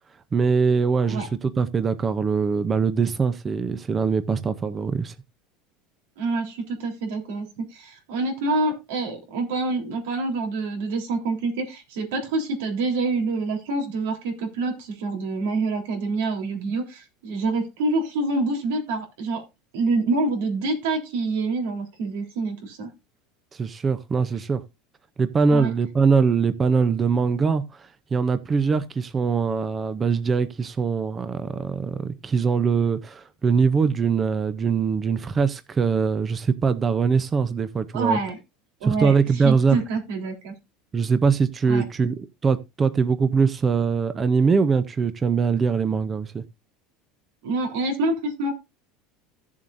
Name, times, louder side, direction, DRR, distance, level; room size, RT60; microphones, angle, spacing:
voice 1, 0.3-5.1 23.5-24.6 25.2-38.2 38.8-39.8 40.9-46.4, right 5 dB, 15° right, 0.5 m, -22 dB
voice 2, 6.2-19.4 19.7-22.9 25.5-25.7 37.9-38.4 38.8-39.1 39.4-40.5 41.7-41.8 47.4-48.5, right 3 dB, 85° right, 3.6 m, -26 dB
16.0 x 7.2 x 2.5 m
cardioid pair, 170°, 0 cm